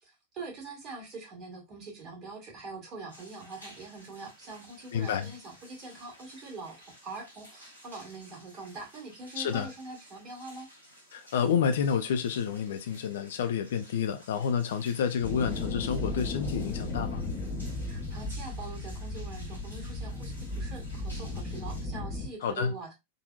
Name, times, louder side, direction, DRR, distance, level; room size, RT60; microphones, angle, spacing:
voice 1, 0.0-10.7 17.8-22.9, right 3 dB, 35° right, 1.8 m, -43 dB
sound 1, 3.1-21.8, equal, 85° right, 1.6 m, -54 dB
voice 2, 4.9-5.3 9.4-9.7 11.1-17.2 22.4-22.7, left 7 dB, 60° left, 0.4 m, -29 dB
sound 2, 15.2-22.3, left 2 dB, 30° left, 0.8 m, -35 dB
3.8 x 2.8 x 2.3 m
figure-of-eight pair, 90°, 0 cm